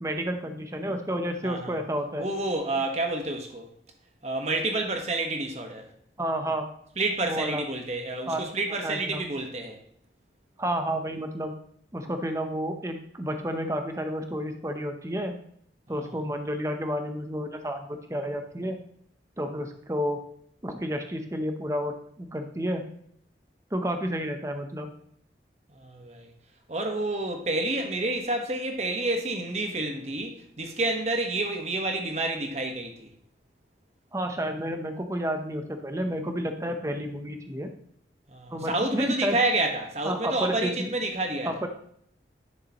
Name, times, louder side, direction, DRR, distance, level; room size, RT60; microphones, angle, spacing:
voice 1, 0.0-2.2 6.2-6.7 7.2-7.6 8.3-8.5 8.8-9.2 10.6-11.5 11.9-15.4 15.9-18.8 19.4-20.2 20.6-22.9 23.7-24.9 34.1-37.7 38.5-39.4 40.0-40.9 41.4-41.7, equal, 15° right, 6 dB, 0.7 m, -30 dB
voice 2, 1.4-1.8 2.2-3.7 4.2-5.9 7.0-9.8 25.8-26.3 26.7-33.1 38.3-41.5, right 2 dB, 40° right, 3 dB, 1.2 m, -29 dB
10.5 x 6.6 x 3.0 m, 0.65 s
head